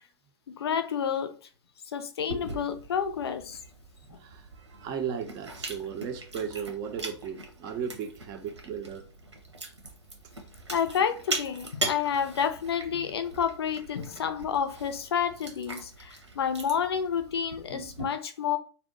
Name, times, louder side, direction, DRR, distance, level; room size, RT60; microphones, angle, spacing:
voice 1, 0.5-1.3 1.9-3.6 4.1-4.2 10.7-18.6, left 7 dB, 60° left, 0.5 m, -29 dB
Chewing mastication, 2.3-18.0, right 2 dB, 80° right, 1.0 m, -40 dB
voice 2, 4.0-9.0, right 7 dB, 25° right, 0.5 m, -36 dB
2.7 x 2.1 x 3.7 m
figure-of-eight pair, 110°, 15 cm